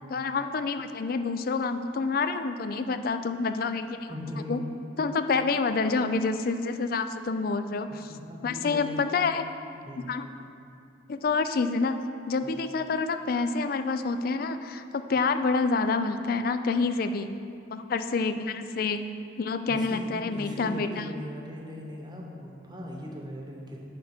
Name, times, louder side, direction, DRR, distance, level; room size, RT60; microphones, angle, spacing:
voice 1, 0.1-4.1 4.5-4.6 5.0-8.0 8.4-9.5 10.1-10.3 11.1-12.0 12.3-17.3 17.7-19.0 19.4-21.1, left 4 dB, 50° left, 9 dB, 0.4 m, -28 dB
voice 2, 4.1-4.7 8.1-9.0 9.8-10.1 12.4-12.6 19.7-23.8, left 1 dB, 25° right, -1 dB, 1.0 m, -39 dB
10.5 x 3.6 x 5.9 m, 2.6 s
head